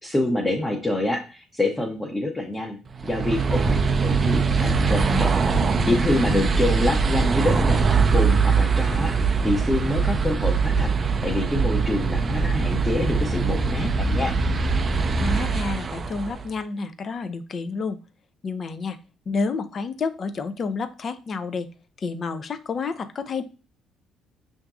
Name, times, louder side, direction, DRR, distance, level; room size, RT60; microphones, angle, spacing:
voice 1, 0.0-5.3 5.6-10.9 11.2-14.3, left 1 dB, 15° left, 0 dB, 0.7 m, -26 dB
sound 1, 2.9-16.5, right 4 dB, 40° right, 0.4 m, -22 dB
voice 2, 5.8-6.5 15.2-18.0 18.4-19.0 19.3-21.7 22.0-23.4, left 4 dB, 45° left, 11 dB, 0.5 m, -30 dB
5.7 x 2.6 x 2.3 m, 0.33 s
supercardioid pair, 80°, 0 cm